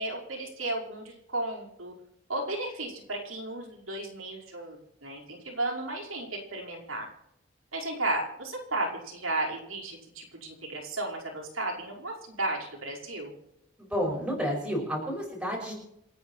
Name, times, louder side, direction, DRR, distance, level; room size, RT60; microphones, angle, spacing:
voice 1, 0.0-1.9 2.3-7.1 7.7-13.3, right 2 dB, 90° right, -2 dB, 5.1 m, -34 dB
voice 2, 13.8-15.7, equal, 5° right, -2 dB, 5.8 m, -30 dB
28.0 x 9.5 x 4.5 m, 0.78 s
head